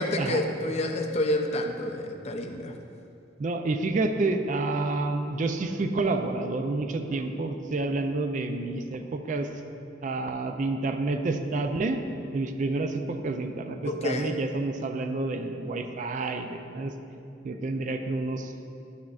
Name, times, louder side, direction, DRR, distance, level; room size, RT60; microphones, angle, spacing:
voice 1, 0.0-2.7 13.9-14.3, left 1 dB, 35° left, 4 dB, 0.4 m, -29 dB
voice 2, 3.4-9.5 10.0-12.0 12.3-16.9 17.4-18.5, right 2 dB, 40° right, 6 dB, 0.4 m, -29 dB
9.8 x 6.3 x 2.4 m, 2.6 s
head